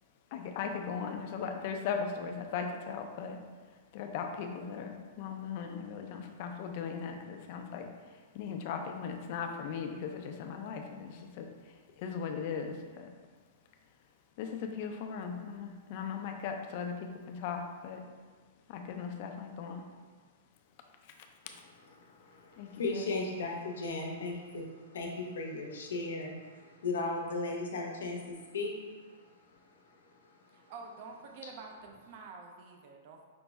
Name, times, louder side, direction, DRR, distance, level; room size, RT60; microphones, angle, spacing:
voice 1, 0.3-3.4 3.9-7.9 8.3-13.1 14.4-18.0 18.7-19.8 22.6-23.0, left 6 dB, 50° left, 4 dB, 0.4 m, -38 dB
voice 2, 21.9-30.7 31.4-31.5, left 3 dB, 90° left, 0 dB, 0.6 m, -37 dB
voice 3, 30.5-33.3, right 4 dB, 50° right, 2 dB, 0.4 m, -48 dB
5.2 x 2.0 x 3.4 m, 1.5 s
hypercardioid pair, 145°, 0 cm